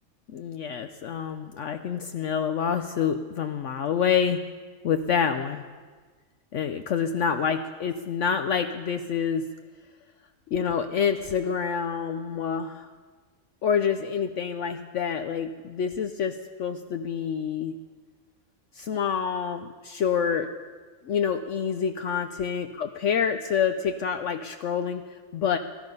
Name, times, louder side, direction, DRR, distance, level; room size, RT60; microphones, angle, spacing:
voice 1, 0.3-4.4 4.8-5.6 6.5-9.5 10.5-12.9 13.6-17.8 18.7-20.5 21.1-25.0 25.3-25.6, left 7 dB, 65° left, 7 dB, 1.0 m, -27 dB
19.5 x 12.5 x 5.4 m, 1.5 s
omnidirectional pair, 1.5 m